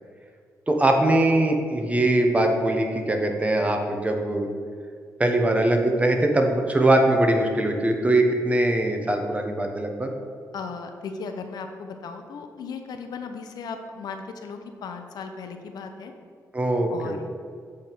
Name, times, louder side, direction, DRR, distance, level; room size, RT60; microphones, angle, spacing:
voice 1, 0.7-4.5 5.2-10.1 16.5-17.2, right 1 dB, 20° right, 3 dB, 0.9 m, -22 dB
voice 2, 10.5-16.1 16.9-17.3, left 5 dB, 80° left, 6 dB, 0.6 m, -36 dB
8.1 x 3.5 x 4.6 m, 2.1 s
cardioid pair, 90°, 7 cm